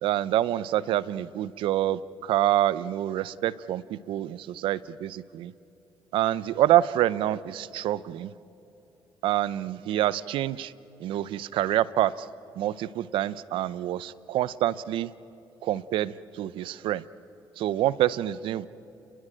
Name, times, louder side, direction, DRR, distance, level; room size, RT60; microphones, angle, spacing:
voice 1, 0.0-5.5 6.1-8.3 9.2-10.7 11.0-12.3 12.6-15.1 15.6-17.0 17.6-18.7, right 13 dB, 80° right, 18 dB, 0.7 m, -27 dB
29.5 x 21.5 x 9.0 m, 3.0 s
supercardioid pair, 70°, 9 cm